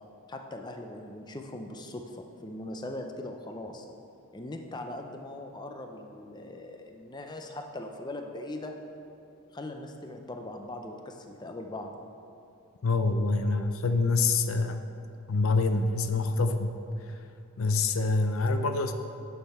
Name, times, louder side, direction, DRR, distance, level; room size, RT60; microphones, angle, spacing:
voice 1, 0.3-3.9 4.3-8.7 9.5-11.9, left 1 dB, 20° left, 4 dB, 0.5 m, -40 dB
voice 2, 12.8-14.8 15.3-16.8 17.6-18.9, left 3 dB, 75° left, 8 dB, 0.5 m, -26 dB
9.8 x 6.6 x 4.3 m, 2.7 s
head